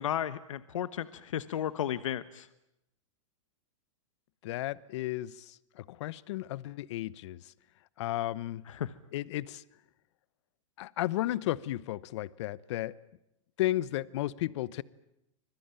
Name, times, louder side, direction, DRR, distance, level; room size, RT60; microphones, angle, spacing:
voice 1, 0.0-2.5 8.7-8.9, left 10 dB, 85° left, 14 dB, 1.1 m, -34 dB
voice 2, 4.4-7.4 8.0-8.6 9.1-9.6 10.8-12.9 13.6-14.8, left 15 dB, 60° left, 20 dB, 0.9 m, -34 dB
25.5 x 21.5 x 9.1 m, 0.86 s
hypercardioid pair, 130°, 16 cm